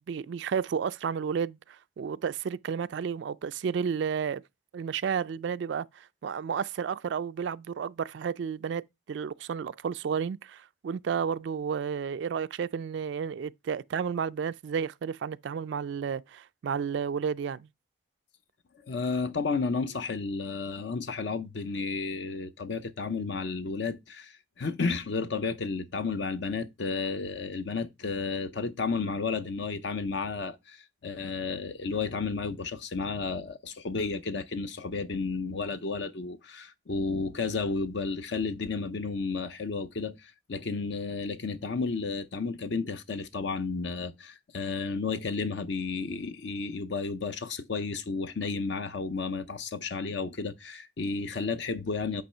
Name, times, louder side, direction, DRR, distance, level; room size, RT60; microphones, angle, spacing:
voice 1, 0.1-4.4 4.7-17.7, right 7 dB, 65° right, 0.3 m, -32 dB
voice 2, 18.9-52.2, left 4 dB, 65° left, 0.6 m, -32 dB
8.7 x 3.0 x 5.4 m
head